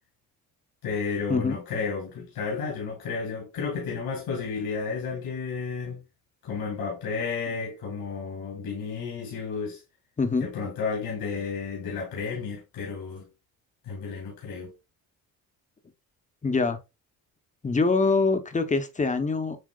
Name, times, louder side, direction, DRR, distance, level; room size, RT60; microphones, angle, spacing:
voice 1, 0.8-6.0 6.4-9.8 10.4-13.3 13.8-14.7, left 5 dB, 65° left, 2.1 m, -32 dB
voice 2, 10.2-10.5 16.4-16.8 17.6-19.6, left 4 dB, 20° left, 0.9 m, -24 dB
7.7 x 2.8 x 2.3 m
supercardioid pair, 80°, 37 cm